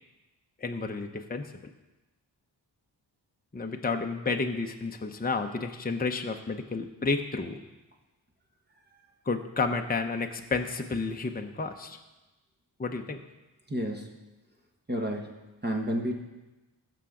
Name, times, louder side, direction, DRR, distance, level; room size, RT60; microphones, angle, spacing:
voice 1, 0.6-1.5 3.5-7.6 9.3-12.0 12.8-13.2, left 4 dB, 20° left, 4 dB, 0.7 m, -31 dB
voice 2, 13.7-14.2 14.9-16.2, equal, 25° right, 1 dB, 1.3 m, -31 dB
15.0 x 6.0 x 3.8 m, 1.1 s
cardioid pair, 55°, 44 cm